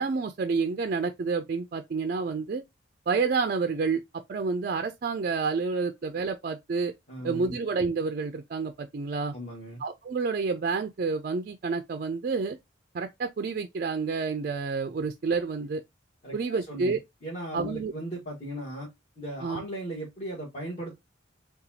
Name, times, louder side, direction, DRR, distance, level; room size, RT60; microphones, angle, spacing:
voice 1, 0.0-2.6 3.1-6.9 7.2-9.3 9.8-12.6 12.9-15.8 16.3-17.0 17.5-17.9 19.4-19.6, right 4 dB, 45° right, 0.4 m, -29 dB
voice 2, 7.1-7.6 9.3-9.8 16.2-18.9 19.2-21.0, right 1 dB, 35° left, 1.4 m, -37 dB
6.8 x 2.3 x 2.7 m
head